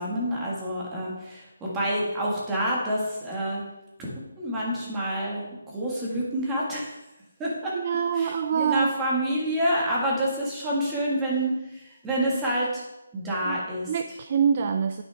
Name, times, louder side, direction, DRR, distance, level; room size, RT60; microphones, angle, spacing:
voice 1, 0.0-3.6 4.0-7.0 7.4-7.8 8.1-12.8 13.1-13.9, equal, 10° right, -5 dB, 1.7 m, -28 dB
voice 2, 7.7-8.9 13.4-13.6 13.9-15.0, right 7 dB, 30° right, 9 dB, 0.3 m, -25 dB
9.7 x 8.8 x 3.4 m, 0.93 s
hypercardioid pair, 175°, 0 cm